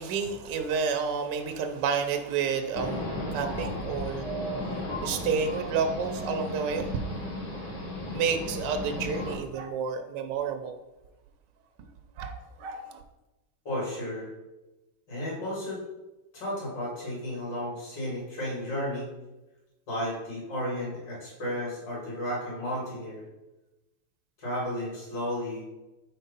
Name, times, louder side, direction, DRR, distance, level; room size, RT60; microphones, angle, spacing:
voice 1, 0.0-4.3 5.0-7.6 8.1-10.7 11.8-11.9 12.2-13.0, right 6 dB, 75° right, 5 dB, 1.0 m, -30 dB
sound 1, 2.7-9.4, left 1 dB, 65° left, 2.2 m, -35 dB
voice 2, 13.6-14.3 15.1-15.8 16.3-19.1 19.9-23.2 24.4-25.6, left 1 dB, 50° left, -5 dB, 2.5 m, -33 dB
4.6 x 4.2 x 5.3 m, 1.0 s
omnidirectional pair, 2.4 m